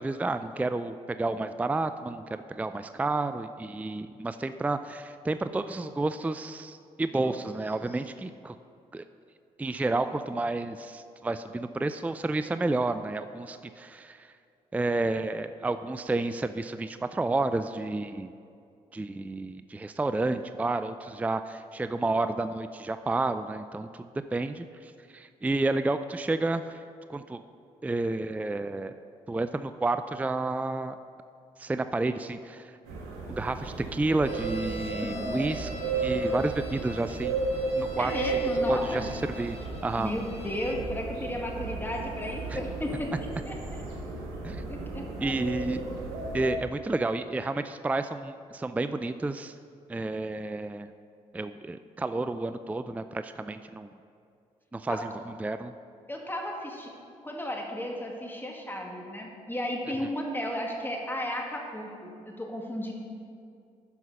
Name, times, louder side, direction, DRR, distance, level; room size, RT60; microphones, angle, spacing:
voice 1, 0.0-8.5 8.9-9.0 9.6-14.3 14.7-18.3 18.9-26.8 27.1-27.4 27.8-28.9 29.3-31.0 31.6-32.8 33.3-35.7 36.0-37.4 37.8-38.4 38.7-39.6 39.8-40.1 42.5-42.6 44.4-44.6 45.2-45.8 46.3-49.6 49.9-50.9 51.3-53.9 54.7-55.7, right 2 dB, 10° right, 11 dB, 0.4 m, -30 dB
voice 2, 7.1-7.5 35.0-35.4 38.0-39.1 40.0-43.1 43.5-43.8 44.7-45.3 54.9-55.0 56.1-56.9 57.2-62.9, left 1 dB, 15° left, 0 dB, 1.9 m, -34 dB
sound 1, 32.9-46.5, right 3 dB, 85° right, 1.3 m, -33 dB
sound 2, 34.2-40.8, left 2 dB, 40° left, 1.2 m, -46 dB
10.0 x 5.7 x 5.6 m, 2.4 s
hypercardioid pair, 45°, 15 cm